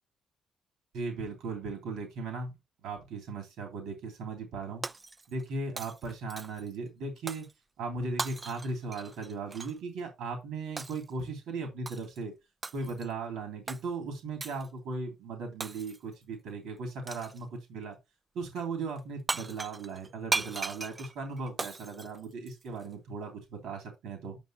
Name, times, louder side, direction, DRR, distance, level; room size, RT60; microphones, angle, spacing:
voice 1, 0.9-2.5 2.8-4.9 5.3-7.5 7.8-12.3 12.7-18.0 18.3-24.4, right 3 dB, 85° right, 3.0 m, -37 dB
Shatter, 4.8-5.5 5.8-6.7 7.3-7.5 8.2-9.8 10.8-11.1 11.9-12.2 12.6-13.1 13.7-13.8 14.4-14.7 15.6-16.1 17.1-17.4 19.0-19.1 19.3-22.9, right 3 dB, 25° right, 0.4 m, -37 dB
9.2 x 5.9 x 3.0 m
cardioid pair, 90°, 0 cm